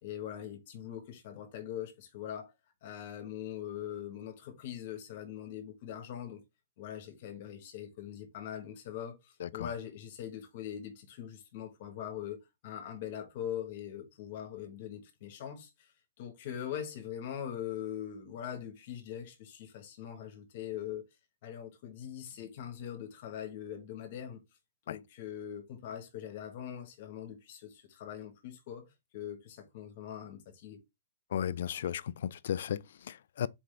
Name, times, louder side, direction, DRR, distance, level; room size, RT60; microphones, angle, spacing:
voice 1, 0.0-2.5 2.8-6.4 6.8-12.4 12.6-15.9 16.2-21.0 21.4-24.4 24.9-28.8 29.1-30.8, left 10 dB, 40° left, 1.2 m, -42 dB
voice 2, 31.3-33.5, left 9 dB, 60° left, 0.3 m, -35 dB
4.4 x 3.7 x 3.2 m
hypercardioid pair, 175°, 0 cm